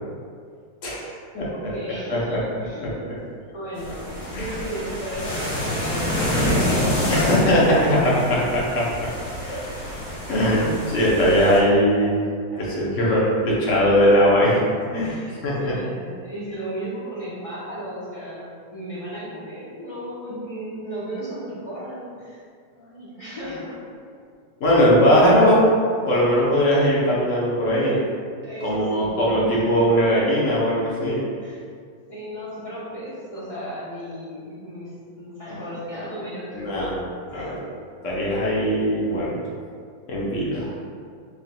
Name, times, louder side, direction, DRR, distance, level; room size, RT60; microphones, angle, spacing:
voice 1, 0.8-1.5 2.1-2.4 2.8-2.9 4.3-4.4 7.1-8.4 8.7-8.8 9.5-9.6 10.3-12.2 12.6-14.5 14.9-15.7 24.6-25.7 26.1-28.0 28.6-31.2 36.5-37.0 37.3-37.6 38.0-39.3 40.1-40.7, equal, 55° left, -5 dB, 1.0 m, -20 dB
voice 2, 1.5-3.1 3.5-8.5 9.3-9.6 12.5-12.9 15.0-22.4 22.7-23.8 28.4-29.6 31.4-31.6 32.1-36.9 37.3-37.6, right 1 dB, 35° left, -10 dB, 0.5 m, -35 dB
sound 1, 3.7-11.6, equal, 75° left, 1.7 m, -27 dB
4.8 x 3.4 x 2.2 m, 2.1 s
omnidirectional pair, 2.0 m